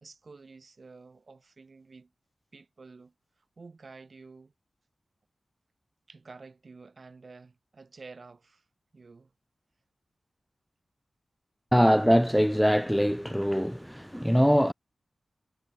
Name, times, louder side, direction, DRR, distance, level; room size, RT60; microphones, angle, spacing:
voice 1, 0.0-2.1 2.5-4.5 6.1-8.7 8.9-9.3, right 4 dB, 60° right, 2.7 m, -50 dB
voice 2, 11.7-14.7, equal, ahead, 0.4 m, -23 dB
cardioid pair, 55°, 0 cm